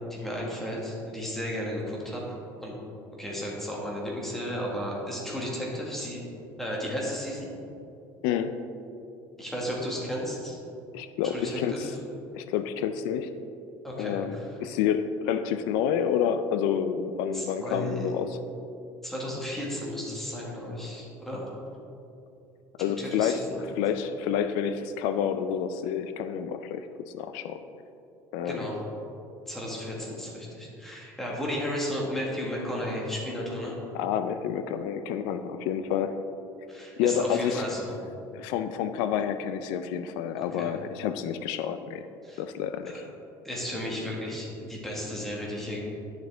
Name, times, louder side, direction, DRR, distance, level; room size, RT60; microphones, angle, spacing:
voice 1, 0.1-2.2 2.6-2.8 3.2-6.2 6.6-7.5 9.4-10.6 11.2-11.9 13.8-14.4 17.3-18.1 19.0-21.5 23.0-23.8 28.4-28.8 29.5-33.8 36.7-37.9 40.5-40.7 42.2-42.4 42.9-43.0 43.4-45.8, equal, 5° left, -4 dB, 1.6 m, -34 dB
voice 2, 8.2-8.6 10.9-11.9 12.3-13.3 14.0-18.4 22.8-23.4 23.8-26.9 27.1-27.6 28.3-28.7 33.9-36.2 37.0-37.6 38.3-42.0 42.4-42.9, left 8 dB, 85° left, 10 dB, 0.4 m, -29 dB
10.5 x 6.5 x 3.4 m, 2.7 s
cardioid pair, 160°, 8 cm